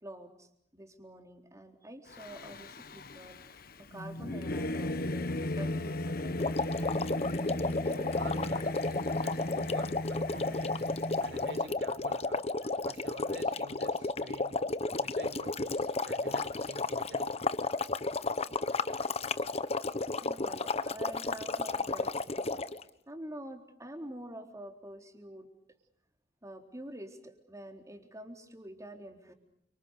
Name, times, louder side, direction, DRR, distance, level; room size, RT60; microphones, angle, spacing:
voice 1, 0.0-5.3 5.6-6.6 8.3-8.5 12.6-12.7 20.2-22.6 23.1-25.5 26.4-29.3, right 1 dB, 20° right, 5 dB, 3.9 m, -47 dB
Singing / Musical instrument, 2.1-11.7, left 1 dB, 55° left, 1.5 m, -36 dB
sound 1, 6.4-22.8, left 3 dB, 35° left, 1.1 m, -32 dB
voice 2, 7.9-8.8 9.2-10.9 11.2-12.4 12.8-14.6 15.0-17.3 19.8-19.9, right 2 dB, 75° right, 9 dB, 4.6 m, -48 dB
29.0 x 26.5 x 6.7 m, 0.77 s
head